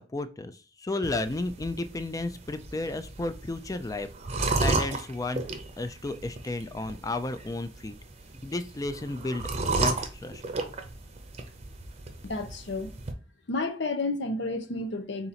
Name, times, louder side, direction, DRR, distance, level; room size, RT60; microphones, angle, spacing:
voice 1, 0.0-5.4 5.8-7.9 8.4-10.4, left 2 dB, 20° left, 0.4 m, -33 dB
sound 1, 1.0-13.1, right 3 dB, 35° right, 0.7 m, -34 dB
voice 2, 12.2-12.9 13.5-15.3, left 2 dB, 70° left, 0.7 m, -31 dB
3.8 x 2.9 x 4.1 m
head